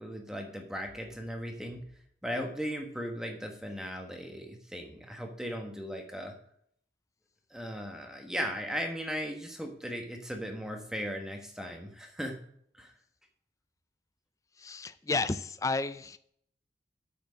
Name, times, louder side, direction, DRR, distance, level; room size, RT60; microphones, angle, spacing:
voice 1, 0.0-1.8 2.2-6.3 7.5-12.4 12.7-12.9, equal, 5° right, 1.2 m, -37 dB
voice 2, 14.6-16.2, left 3 dB, 20° left, 0.3 m, -32 dB
8.6 x 6.1 x 6.3 m
head